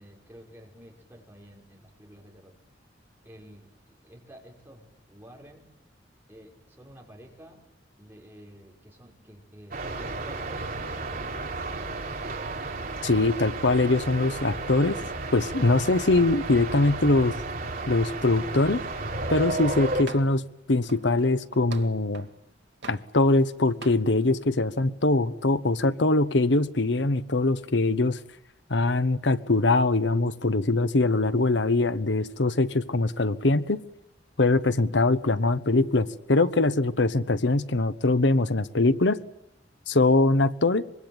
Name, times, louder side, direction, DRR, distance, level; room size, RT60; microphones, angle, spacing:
voice 1, 0.0-2.5 3.2-5.7 6.3-7.6 8.0-12.4, equal, 10° right, -1 dB, 5.8 m, -50 dB
sound 1, 9.7-20.0, right 2 dB, 55° right, 3.5 m, -33 dB
voice 2, 13.0-15.0 15.3-17.3 17.9-18.8 19.3-20.4 20.7-22.3 22.9-28.2 28.7-33.8 34.4-39.2 39.9-40.8, left 2 dB, 75° left, 13 dB, 1.1 m, -22 dB
sound 2, 20.1-20.5 20.9-22.4 22.8-23.5 23.8-24.1, right 4 dB, 75° right, 2.1 m, -44 dB
25.0 x 22.5 x 9.0 m, 0.84 s
head